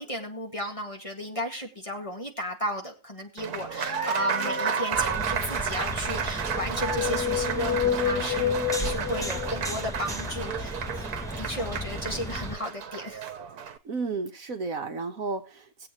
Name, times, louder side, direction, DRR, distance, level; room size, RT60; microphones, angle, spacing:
voice 1, 0.0-10.8 11.4-13.3, equal, 20° left, 2 dB, 2.0 m, -34 dB
Applause, 3.4-13.8, right 7 dB, 75° right, 1.6 m, -32 dB
sound 1, 3.8-5.4 6.2-10.1, left 7 dB, 70° left, 2.3 m, -31 dB
sound 2, 4.9-12.6, equal, 5° left, 0.8 m, -35 dB
voice 2, 13.8-15.9, right 4 dB, 60° right, 5 dB, 1.5 m, -32 dB
20.0 x 8.1 x 3.0 m, 0.29 s
omnidirectional pair, 1.7 m